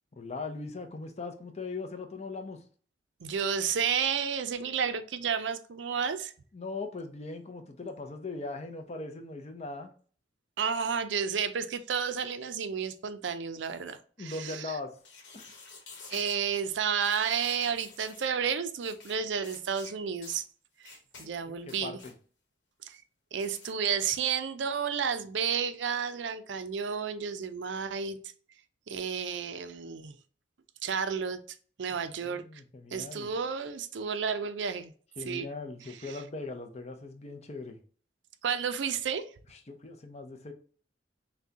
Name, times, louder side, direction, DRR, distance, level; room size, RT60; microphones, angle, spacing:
voice 1, 0.1-2.6 6.5-9.9 14.2-15.0 15.3-15.5 21.2-22.1 32.2-33.3 35.2-37.8 39.7-40.5, left 3 dB, 35° left, 0.5 m, -40 dB
voice 2, 3.2-6.3 10.6-14.8 16.1-20.4 20.8-22.0 22.8-23.0 23.3-28.2 28.9-30.2 30.8-32.4 32.9-34.9 35.2-35.5 36.0-36.2 38.4-39.3, right 6 dB, 75° right, 0.5 m, -31 dB
sound 1, 15.0-16.4 17.0-18.3 18.8-19.2 19.4-19.9 20.2-20.4 20.8-21.3 21.6-22.1 23.3-23.7, left 4 dB, 75° left, 1.1 m, -49 dB
5.9 x 2.2 x 2.7 m
head